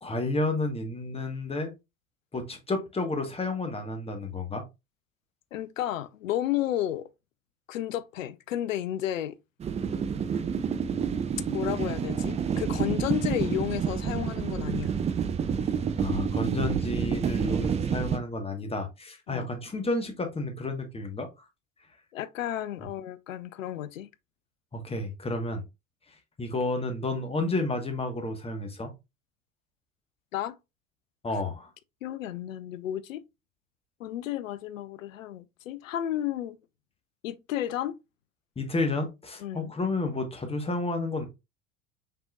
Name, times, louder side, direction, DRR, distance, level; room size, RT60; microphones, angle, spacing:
voice 1, 0.0-1.7 2.3-4.6 16.0-21.3 24.7-25.6 26.4-28.9 31.2-31.7 38.6-41.2, left 2 dB, 15° left, 1.3 m, -31 dB
voice 2, 5.5-7.1 7.7-9.4 11.5-15.0 19.3-19.5 22.1-24.1 30.3-30.6 32.0-33.2 34.0-36.6 37.2-38.0 39.4-39.7, left 12 dB, 70° left, 0.6 m, -32 dB
sound 1, 9.6-18.2, right 7 dB, 15° right, 0.5 m, -29 dB
5.5 x 3.6 x 2.3 m
figure-of-eight pair, 70°, 40 cm